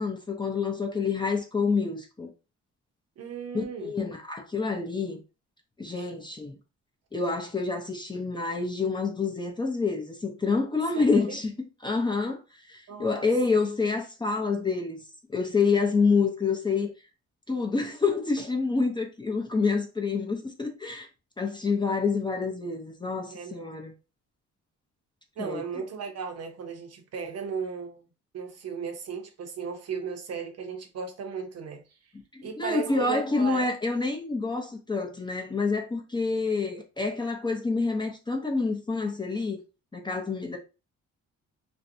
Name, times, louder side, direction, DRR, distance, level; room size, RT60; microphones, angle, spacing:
voice 1, 0.0-2.3 3.5-5.2 5.8-6.5 7.1-11.5 11.8-15.0 15.3-16.9 17.5-21.1 21.4-23.9 25.4-25.8 32.3-39.6 39.9-40.6, left 4 dB, 15° left, 0.6 m, -27 dB
voice 2, 3.2-3.9 5.9-6.1 10.9-11.4 12.9-13.3 23.3-23.6 25.4-28.1 28.3-31.8 32.4-33.7, right 6 dB, 55° right, 0.7 m, -36 dB
2.5 x 2.1 x 2.6 m
cardioid pair, 90°, 30 cm